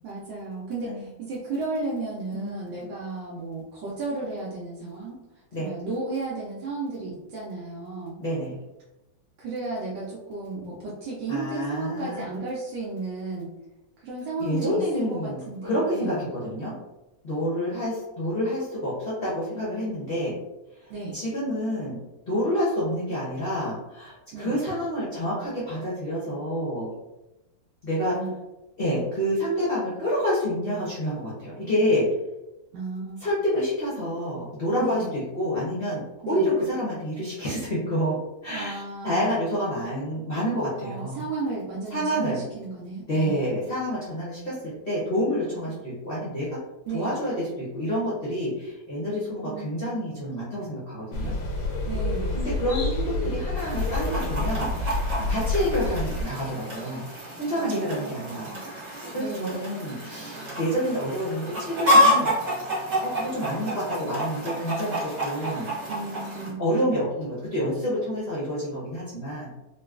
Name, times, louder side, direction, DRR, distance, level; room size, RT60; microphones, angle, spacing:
voice 1, 0.0-5.2 5.6-8.2 9.4-13.5 14.0-16.2 20.9-21.2 24.3-24.5 28.1-28.3 32.7-33.2 34.8-35.1 36.2-36.5 38.5-39.2 40.8-43.6 45.7-45.8 46.9-47.2 49.4-49.7 51.8-52.5 55.1-55.4 57.5-58.6 59.2-59.6 65.9-66.6, right 3 dB, 80° right, -6 dB, 1.4 m, -34 dB
voice 2, 2.3-3.0 5.5-5.7 8.2-8.6 11.3-12.2 14.4-16.8 17.2-20.3 20.8-22.0 22.2-26.9 27.8-28.2 28.8-32.1 33.2-41.2 41.9-42.5 43.1-46.6 46.9-51.3 52.3-57.1 57.4-58.5 59.1-62.4 63.0-65.7 66.6-69.5, equal, 50° left, -8 dB, 0.7 m, -28 dB
sound 1, 51.1-56.2, left 2 dB, 80° left, 1.3 m, -28 dB
Chicken rooster, 53.6-66.5, left 1 dB, 50° right, 1.7 m, -28 dB
4.0 x 2.2 x 2.4 m, 0.98 s
omnidirectional pair, 2.1 m